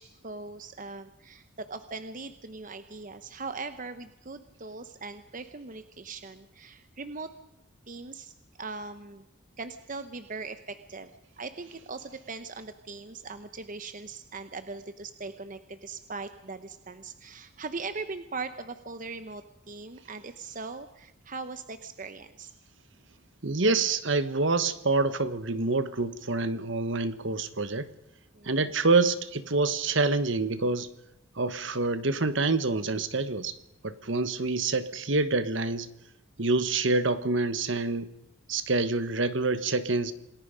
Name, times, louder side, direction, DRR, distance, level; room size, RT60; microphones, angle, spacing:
voice 1, 0.0-7.3 7.9-8.3 8.6-9.2 9.6-22.5 28.3-28.7, right 4 dB, 40° right, 10 dB, 0.9 m, -40 dB
voice 2, 23.4-27.9 28.4-30.9 31.4-33.6 33.8-35.9 36.4-38.1 38.5-40.1, right 3 dB, 60° right, 12 dB, 1.4 m, -26 dB
27.5 x 20.0 x 5.2 m, 0.86 s
head